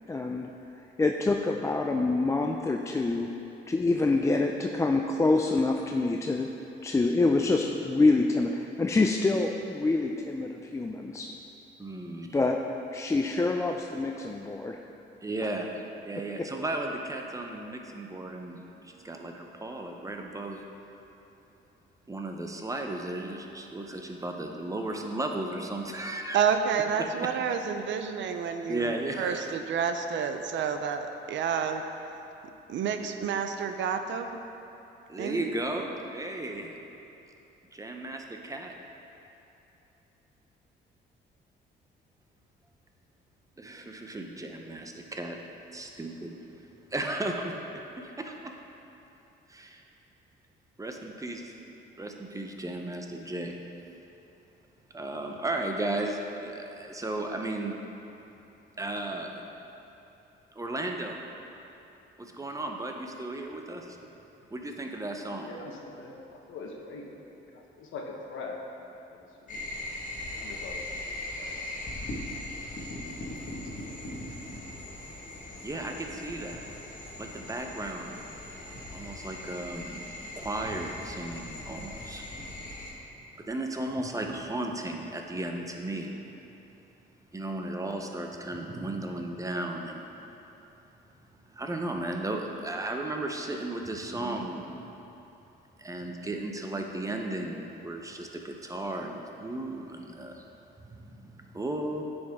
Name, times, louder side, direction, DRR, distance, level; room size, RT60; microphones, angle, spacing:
voice 1, 0.1-0.5 1.0-3.3 3.7-6.5 6.8-11.3 12.3-12.6 12.9-14.8 16.4-16.5, left 3 dB, 15° left, 2 dB, 0.3 m, -26 dB
voice 2, 11.8-12.4 15.2-15.7 16.0-20.6 22.1-26.4 28.7-29.5 33.2-33.3 35.1-36.7 37.7-38.7 43.6-45.4 45.7-46.3 46.9-48.5 49.5-49.8 50.8-51.5 52.0-53.5 54.9-57.7 58.8-59.5 60.5-61.2 62.2-64.0 64.5-65.5 75.6-76.6 77.2-78.2 78.9-80.0 80.3-82.3 83.4-86.2 87.3-90.1 91.5-94.9 95.8-100.5 100.8-102.0, right 2 dB, 15° right, 2 dB, 0.7 m, -35 dB
voice 3, 26.3-31.8 32.7-34.4 35.2-35.4, right 7 dB, 70° right, 7 dB, 0.6 m, -29 dB
voice 4, 65.4-68.6 69.1-69.6 70.3-71.6 73.2-73.9, left 3 dB, 80° left, -1 dB, 1.1 m, -43 dB
sound 1, 69.5-82.9, left 1 dB, 40° left, 1.4 m, -40 dB
9.6 x 5.3 x 3.6 m, 2.9 s
cardioid pair, 90°, 20 cm